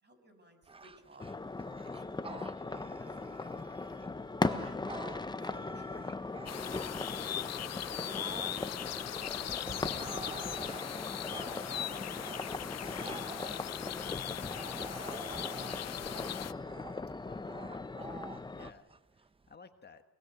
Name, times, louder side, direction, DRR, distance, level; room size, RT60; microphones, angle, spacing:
voice 1, 0.0-1.4 1.8-3.8 4.6-4.9 5.3-7.6 8.0-9.0 9.3-11.2 11.8-14.8, equal, 35° right, 6 dB, 6.5 m, -59 dB
Bark / Growling, 0.6-7.2 7.7-19.6, right 3 dB, 20° right, 0.8 m, -49 dB
sound 1, 1.2-18.7, left 3 dB, 15° left, 0.9 m, -39 dB
voice 2, 4.4-4.7 17.2-20.0, left 5 dB, 35° left, 7 dB, 1.5 m, -56 dB
sound 2, 6.5-16.5, left 11 dB, 60° left, 0.8 m, -40 dB
23.0 x 22.0 x 8.0 m, 1.3 s
cardioid pair, 90°, 30 cm